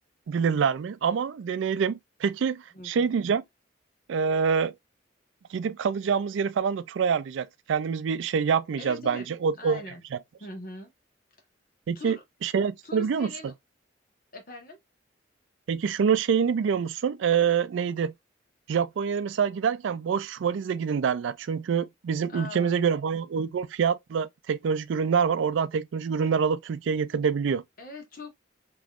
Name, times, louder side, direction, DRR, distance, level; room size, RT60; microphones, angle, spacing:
voice 1, 0.3-3.4 4.1-4.7 5.5-9.8 11.9-12.2 12.4-13.3 15.7-18.1 18.7-27.6, right 6 dB, 85° right, 0.3 m, -26 dB
voice 2, 2.7-3.1 8.8-9.3 9.6-10.0 10.4-10.9 11.9-12.2 12.8-13.5 14.3-14.8 22.3-22.9 27.8-28.3, left 2 dB, 50° left, 1.2 m, -41 dB
3.5 x 3.0 x 2.4 m
head